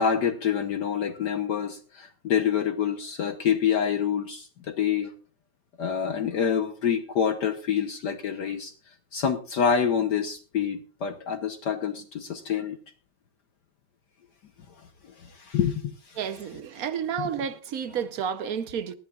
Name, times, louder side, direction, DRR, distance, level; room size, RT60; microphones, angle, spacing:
voice 1, 0.0-5.1 5.8-8.7 9.1-12.8 15.2-16.2 17.2-17.3, left 7 dB, 60° left, 1.4 m, -27 dB
voice 2, 16.2-18.9, right 7 dB, 55° right, 1.1 m, -31 dB
19.0 x 14.5 x 2.4 m
omnidirectional pair, 2.2 m